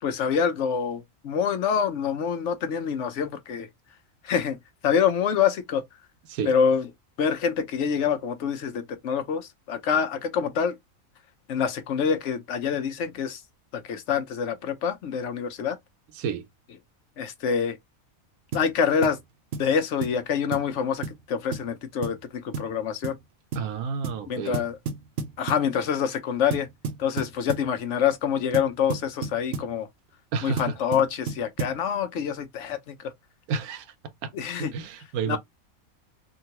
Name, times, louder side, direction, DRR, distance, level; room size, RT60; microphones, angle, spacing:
voice 1, 0.0-3.7 4.2-4.6 4.8-5.8 6.4-6.9 7.2-10.8 11.5-13.4 13.8-15.8 17.2-17.8 18.5-19.2 19.6-23.2 24.3-24.8 25.4-26.7 27.0-29.9 30.4-33.1 34.3-34.7 35.3-35.4, left 7 dB, 60° left, 1.0 m, -26 dB
voice 2, 16.1-16.5 23.5-24.6 30.3-30.7 33.5-33.9 34.2-34.3 34.6-35.4, right 6 dB, 85° right, 1.1 m, -30 dB
sound 1, 18.5-18.7 19.0-19.2 19.5-19.7 20.0-20.2 20.5-20.7 21.0-21.2 21.5-21.7 22.0-22.2 22.5-22.8 23.0-23.2 23.5-23.7 24.0-24.2 24.5-25.7 26.5-27.7 28.5-29.7 30.6-31.8, right 5 dB, 55° right, 0.8 m, -32 dB
3.7 x 2.3 x 2.8 m
omnidirectional pair, 1.5 m